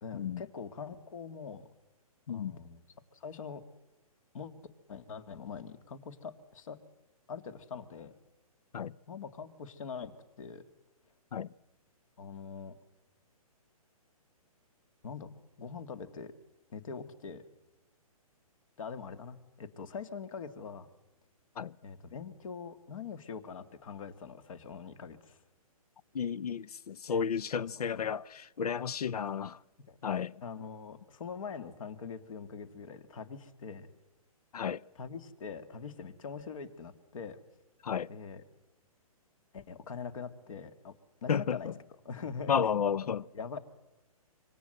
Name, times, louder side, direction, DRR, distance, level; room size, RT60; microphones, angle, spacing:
voice 1, 0.0-1.7 2.3-2.8 3.1-3.6 4.3-4.5 4.9-6.8 7.3-8.2 9.1-10.1 10.4-10.6 12.2-12.8 15.0-15.3 15.6-16.3 16.7-17.4 18.8-20.9 21.8-25.4 27.1-27.2 27.5-27.8 29.9-30.0 30.4-33.9 35.0-37.4 38.1-38.4 39.5-40.9 41.2-41.7 42.0-42.8 43.3-43.6, left 6 dB, 60° left, 2.1 m, -43 dB
voice 2, 2.3-2.6 8.7-9.0 11.3-11.5 21.6-21.7 26.1-29.6 30.0-30.4 34.5-34.8 37.8-38.1 41.3-41.7 42.5-43.2, left 7 dB, 80° left, 0.8 m, -32 dB
26.5 x 24.5 x 7.8 m
hypercardioid pair, 150°, 19 cm